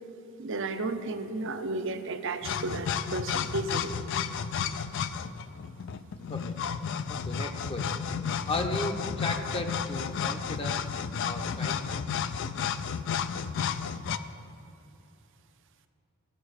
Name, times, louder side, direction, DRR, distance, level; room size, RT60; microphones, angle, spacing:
voice 1, 0.4-3.9, right 2 dB, 60° right, 8 dB, 0.7 m, -33 dB
sound 1, 2.4-14.2, left 7 dB, 60° left, 0.4 m, -32 dB
voice 2, 7.1-8.0 8.5-10.8 11.2-12.2, left 2 dB, 25° left, 5 dB, 0.7 m, -35 dB
14.0 x 5.8 x 6.4 m, 3.0 s
head